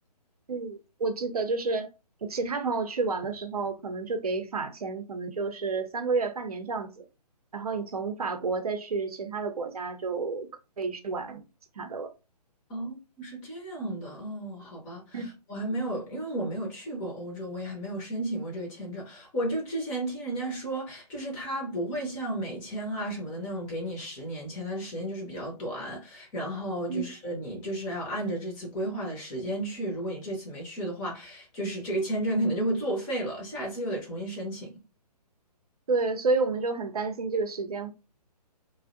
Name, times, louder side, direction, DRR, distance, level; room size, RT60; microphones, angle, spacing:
voice 1, 0.5-1.9 2.2-7.0 7.5-10.5 10.8-11.4 11.8-12.1 15.1-15.3 26.9-27.0 35.9-37.9, right 4 dB, 60° right, 0.6 m, -30 dB
voice 2, 12.7-34.7, right 1 dB, 15° left, 0.5 m, -33 dB
2.5 x 2.0 x 2.4 m
figure-of-eight pair, 135°, 21 cm